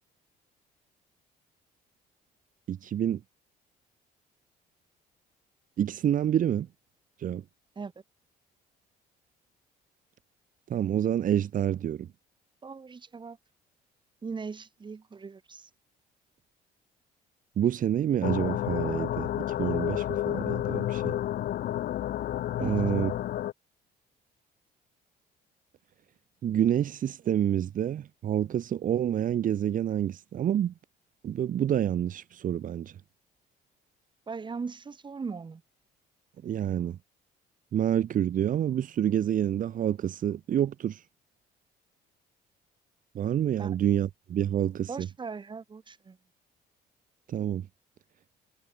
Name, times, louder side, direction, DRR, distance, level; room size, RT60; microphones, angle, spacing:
voice 1, 2.7-3.2 5.8-6.7 7.2-7.4 10.7-12.1 17.6-19.3 19.6-21.2 22.6-23.1 26.4-30.7 31.2-33.0 36.4-37.0 37.7-41.0 43.1-45.1 47.3-47.7, right 10 dB, 50° right, 1.9 m, -28 dB
voice 2, 12.6-13.4 14.2-15.7 22.6-22.8 34.3-35.6 43.6-43.7 44.9-46.2, right 5 dB, 25° right, 4.9 m, -39 dB
sound 1, 18.2-23.5, left 12 dB, 65° left, 5.0 m, -30 dB
cardioid pair, 110°, 17 cm